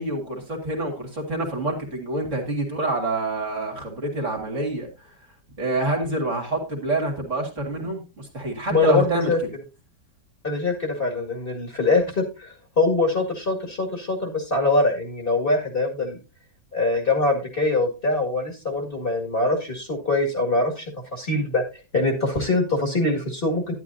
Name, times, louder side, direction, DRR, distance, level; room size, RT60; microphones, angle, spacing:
voice 1, 0.0-5.1 5.6-9.3, right 2 dB, 45° right, 1 dB, 2.6 m, -27 dB
voice 2, 8.7-9.4 10.4-16.2 16.7-20.9 21.1-21.6 21.9-23.7, left 2 dB, 30° left, 1 dB, 2.2 m, -23 dB
11.0 x 11.0 x 2.7 m, 0.29 s
omnidirectional pair, 1.8 m